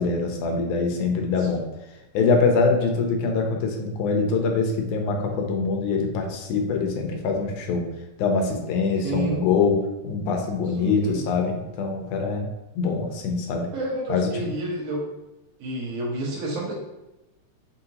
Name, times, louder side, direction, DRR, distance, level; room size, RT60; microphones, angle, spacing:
voice 1, 0.0-1.7 2.1-7.9 8.2-12.5 12.8-13.7 14.1-14.5, left 4 dB, 85° left, 2 dB, 2.2 m, -24 dB
voice 2, 9.0-9.4 10.8-11.2 13.7-15.0 15.6-16.7, right 1 dB, 90° right, -4 dB, 2.7 m, -30 dB
6.0 x 2.8 x 2.8 m, 0.98 s
omnidirectional pair, 3.4 m